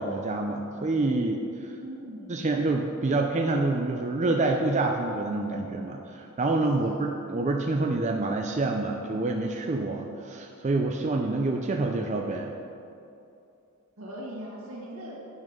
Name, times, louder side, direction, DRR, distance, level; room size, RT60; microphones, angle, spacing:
voice 1, 0.0-1.7 2.3-12.5, right 2 dB, 35° right, 2 dB, 0.5 m, -27 dB
voice 2, 1.8-2.5 6.8-7.0 14.0-15.2, right 1 dB, 85° right, -4 dB, 2.1 m, -40 dB
8.8 x 6.2 x 5.3 m, 2.6 s
head